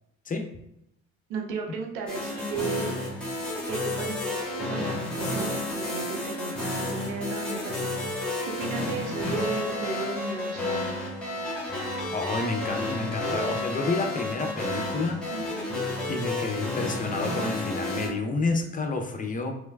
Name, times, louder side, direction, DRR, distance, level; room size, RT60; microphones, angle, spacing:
voice 1, 1.3-10.8 15.3-15.8, right 4 dB, 80° right, 2 dB, 0.6 m, -35 dB
sound 1, 2.1-18.1, left 2 dB, 5° left, 1.5 m, -31 dB
voice 2, 12.1-15.2 16.1-19.5, left 3 dB, 25° left, 4 dB, 0.5 m, -29 dB
3.2 x 3.2 x 2.3 m, 0.79 s
hypercardioid pair, 50°, 33 cm